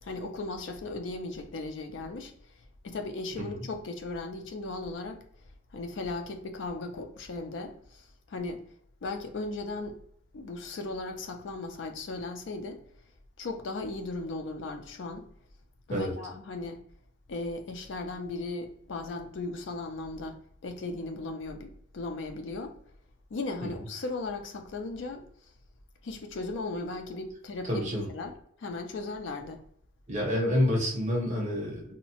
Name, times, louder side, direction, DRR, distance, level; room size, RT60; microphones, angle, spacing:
voice 1, 0.0-2.3 2.8-5.2 5.7-8.6 9.0-9.9 10.3-12.8 13.4-15.3 15.9-16.8 17.3-22.7 23.3-25.2 26.0-28.3 28.6-29.6, left 2 dB, 65° left, 6 dB, 0.4 m, -37 dB
voice 2, 27.7-28.1 30.1-31.8, left 1 dB, 40° right, -2 dB, 0.9 m, -28 dB
2.7 x 2.0 x 2.8 m, 0.66 s
head